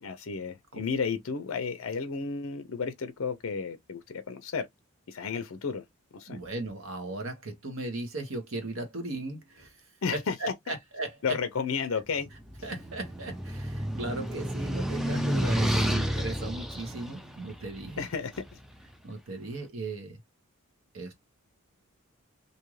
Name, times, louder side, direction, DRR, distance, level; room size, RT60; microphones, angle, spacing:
voice 1, 0.0-4.7 5.1-5.8 6.1-6.4 10.0-10.3 11.2-12.3 18.0-18.3, left 5 dB, 65° left, 0.5 m, -32 dB
voice 2, 6.3-9.8 10.1-11.4 12.6-18.1 19.0-20.2 20.9-21.1, right 2 dB, 65° right, 1.0 m, -37 dB
sound 1, 12.3-18.5, equal, ahead, 0.3 m, -31 dB
2.7 x 2.4 x 3.1 m
head